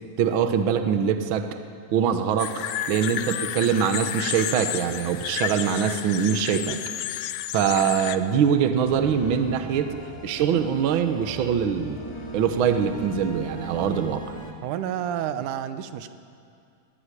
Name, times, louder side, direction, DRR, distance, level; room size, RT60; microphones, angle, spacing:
voice 1, 0.2-1.5 1.9-6.8 7.5-9.9 10.2-12.0 12.3-14.2, right 7 dB, 65° right, 8 dB, 1.3 m, -23 dB
sound 1, 2.4-8.2, left 11 dB, 75° left, 2.0 m, -31 dB
sound 2, 8.8-14.5, right 1 dB, 15° left, 1.3 m, -39 dB
voice 2, 14.6-16.1, right 10 dB, 80° right, 11 dB, 2.3 m, -30 dB
19.0 x 16.0 x 9.8 m, 2.4 s
omnidirectional pair, 3.6 m